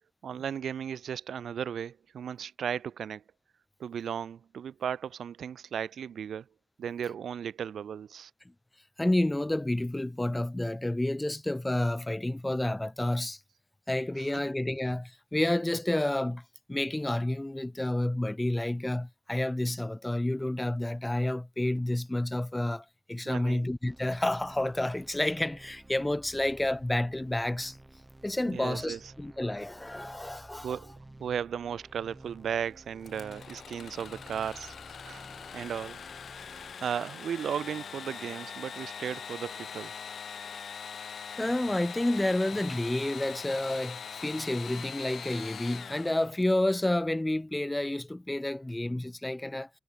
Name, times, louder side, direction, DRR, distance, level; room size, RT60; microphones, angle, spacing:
voice 1, 0.2-3.2 3.8-6.4 6.8-8.3 14.3-14.5 23.2-23.7 28.4-29.0 30.6-30.9 31.2-35.2 35.5-36.0 36.5-39.9, right 8 dB, 80° right, 3.1 m, -35 dB
voice 2, 9.0-13.4 13.9-16.4 16.7-27.8 28.2-30.7 41.4-49.7, left 1 dB, 10° left, 1.2 m, -30 dB
sound 1, 23.9-36.8, right 1 dB, 10° right, 2.9 m, -52 dB
Engine / Sawing, 33.0-46.7, left 7 dB, 55° left, 2.4 m, -42 dB
wide cardioid pair, 160°, 0 cm